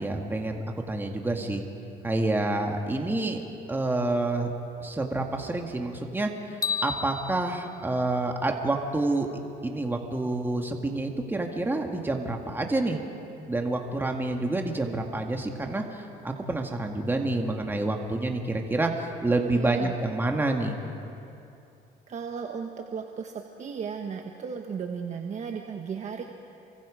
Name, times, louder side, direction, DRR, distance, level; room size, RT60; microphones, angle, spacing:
voice 1, 0.0-1.6 2.0-3.4 3.7-4.5 4.8-9.3 9.6-13.0 13.5-20.8, right 2 dB, 10° right, 2 dB, 1.8 m, -28 dB
sound 1, 6.6-8.9, left 6 dB, 20° left, 0.7 m, -34 dB
voice 2, 19.5-19.9 22.1-26.2, right 6 dB, 45° right, 3 dB, 1.4 m, -35 dB
28.5 x 24.5 x 5.1 m, 2.7 s
cardioid pair, 110°, 17 cm